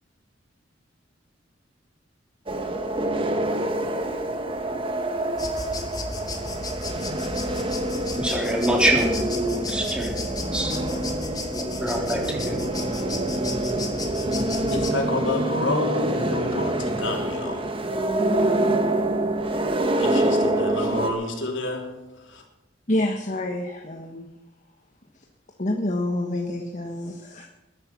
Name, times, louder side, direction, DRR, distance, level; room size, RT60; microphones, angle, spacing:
sound 1, 2.5-21.1, right 1 dB, 30° right, 1.5 m, -26 dB
sound 2, 5.4-14.9, left 2 dB, 20° left, 2.3 m, -35 dB
voice 1, 8.2-10.7 11.5-12.6, right 1 dB, 5° right, 3.4 m, -25 dB
voice 2, 14.7-17.7 20.0-22.0 22.3-22.4, left 2 dB, 80° left, 3.6 m, -29 dB
voice 3, 22.9-24.3 25.6-27.5, left 1 dB, 40° left, 1.4 m, -27 dB
20.5 x 11.0 x 6.1 m
head